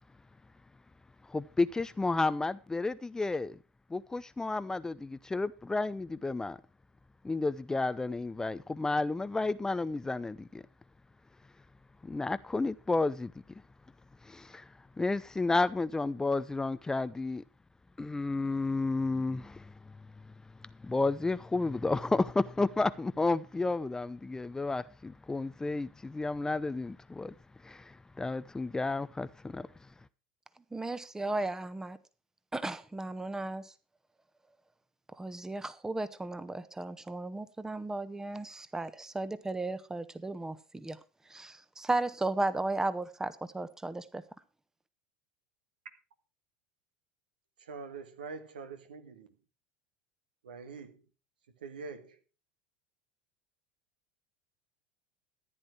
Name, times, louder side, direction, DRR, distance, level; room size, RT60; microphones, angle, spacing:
voice 1, 1.3-3.6 3.9-6.6 7.2-10.6 12.0-13.3 14.2-17.4 18.0-20.0 20.8-27.3 27.6-29.7, left 3 dB, 10° left, 0.6 m, -32 dB
voice 2, 30.7-32.0 32.5-33.7 35.2-41.0 41.3-44.2, right 2 dB, 10° right, 1.2 m, -35 dB
voice 3, 47.6-49.3 50.4-51.0 51.6-52.2, right 4 dB, 75° right, 1.9 m, -44 dB
14.5 x 10.5 x 4.6 m
figure-of-eight pair, 75°, 5 cm